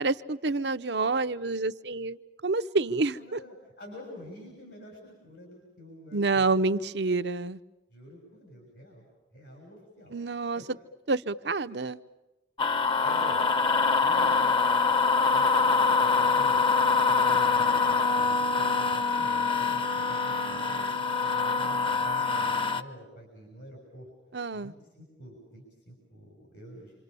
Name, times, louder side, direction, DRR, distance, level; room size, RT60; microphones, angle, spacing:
voice 1, 0.0-3.4 6.1-7.6 10.1-10.6 11.1-12.0 24.3-24.7, right 3 dB, 70° right, 10 dB, 0.9 m, -28 dB
voice 2, 3.1-6.7 7.9-9.1 9.3-10.2 10.5-10.7 13.0-13.4 14.0-14.5 15.3-16.6 16.9-20.8 21.2-24.1 24.5-26.9, equal, 80° left, 1 dB, 7.1 m, -48 dB
sound 1, 12.6-22.8, left 4 dB, 30° left, 0.9 m, -24 dB
27.5 x 27.0 x 7.0 m, 1.1 s
head